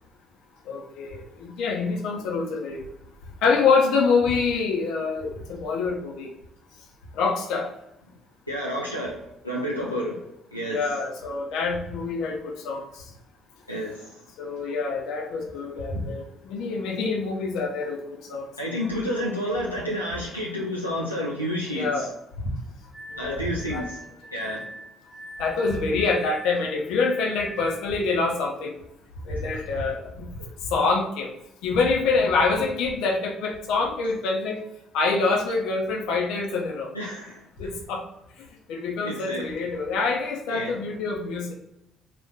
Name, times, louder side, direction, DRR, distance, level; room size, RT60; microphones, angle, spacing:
voice 1, 0.7-2.8 3.4-6.3 7.1-7.7 10.7-12.8 14.4-18.5 21.7-22.1 23.1-23.4 23.7-23.8 25.4-28.7 29.2-30.3 30.7-31.3 31.6-34.6 34.9-36.9 37.6-38.0 38.7-41.5, left 4 dB, 60° left, -1 dB, 0.8 m, -26 dB
voice 2, 8.5-10.3 10.5-10.9 13.7-14.2 18.6-22.1 23.2-24.0 24.3-24.7 30.4-30.5 32.1-32.2 36.9-37.4 39.0-39.5 40.5-40.8, equal, 90° left, -5 dB, 0.5 m, -30 dB
Glass, 22.9-28.0, equal, 20° left, 0.6 m, -42 dB
4.1 x 2.6 x 3.5 m, 0.85 s
figure-of-eight pair, 50°, 0 cm